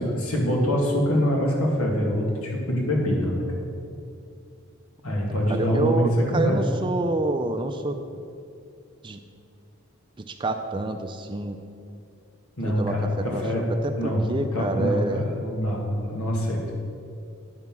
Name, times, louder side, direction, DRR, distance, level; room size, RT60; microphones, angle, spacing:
voice 1, 0.0-3.6 5.0-6.6 12.6-13.6 14.0-14.2 14.5-16.8, equal, 85° left, -1 dB, 1.9 m, -24 dB
voice 2, 5.5-8.0 9.0-9.2 10.4-11.6 12.6-13.4 13.8-15.3, right 2 dB, 20° right, 7 dB, 0.4 m, -27 dB
9.6 x 5.6 x 6.0 m, 2.5 s
head